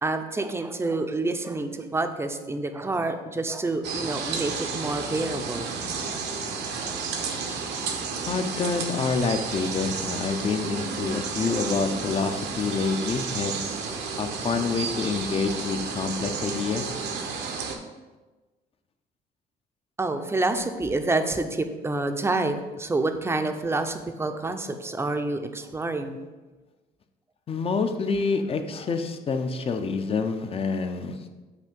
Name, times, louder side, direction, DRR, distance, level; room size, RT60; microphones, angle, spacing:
voice 1, 0.0-5.7 6.0-6.5 6.8-7.2 7.7-8.2 20.0-26.2, right 2 dB, 15° right, 7 dB, 0.5 m, -28 dB
sound 1, 3.8-17.8, right 5 dB, 80° right, 0.9 m, -32 dB
voice 2, 8.3-13.9 14.2-16.9 27.5-31.2, left 4 dB, 35° left, 7 dB, 0.6 m, -27 dB
8.2 x 2.7 x 5.2 m, 1.2 s
cardioid pair, 110°, 17 cm